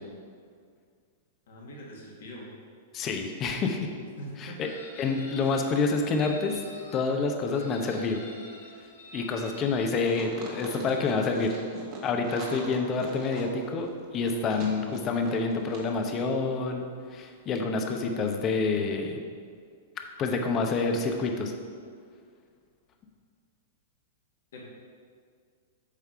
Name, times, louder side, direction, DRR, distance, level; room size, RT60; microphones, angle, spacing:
voice 1, 1.5-2.5 4.2-4.5 5.4-5.5 24.5-24.6, equal, 70° left, -3 dB, 1.9 m, -43 dB
voice 2, 2.9-3.9 4.4-4.7 5.0-6.6 6.9-8.2 9.1-11.5 12.0-13.9 14.1-19.2 20.2-21.5, left 4 dB, 35° left, 4 dB, 0.9 m, -28 dB
Chicken rooster, 4.6-7.0 7.5-10.0, left 1 dB, 90° left, 1.6 m, -47 dB
sound 1, 10.0-15.9 16.1-16.3, right 3 dB, 45° right, 1.6 m, -43 dB
8.2 x 3.5 x 5.6 m, 2.1 s
hypercardioid pair, 110°, 0 cm